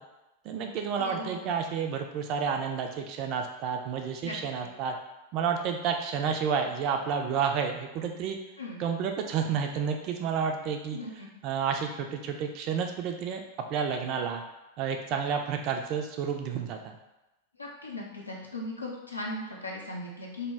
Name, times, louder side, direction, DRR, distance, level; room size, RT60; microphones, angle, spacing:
voice 1, 0.4-5.0 5.3-8.4 8.8-11.0 11.4-13.4 13.7-14.4 14.8-17.0, right 6 dB, 40° right, 4 dB, 0.3 m, -30 dB
voice 2, 1.0-1.5 4.2-4.4 8.6-8.8 10.9-11.3 17.6-20.5, left 2 dB, 85° left, -2 dB, 0.5 m, -38 dB
2.1 x 2.1 x 3.4 m, 0.99 s
figure-of-eight pair, 90°, 0 cm